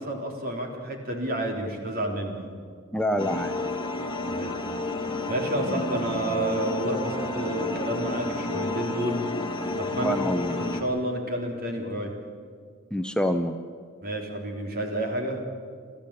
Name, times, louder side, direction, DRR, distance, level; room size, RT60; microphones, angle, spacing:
voice 1, 0.0-2.5 4.3-4.5 5.3-9.2 9.7-10.1 10.6-12.1 14.0-15.4, right 1 dB, 50° right, 2 dB, 3.8 m, -30 dB
voice 2, 2.9-3.5 5.7-5.8 10.0-10.6 12.9-13.6, equal, 5° left, 6 dB, 0.7 m, -26 dB
sound 1, 3.2-10.8, left 2 dB, 25° left, 1.9 m, -30 dB
29.5 x 14.0 x 8.5 m, 2.1 s
head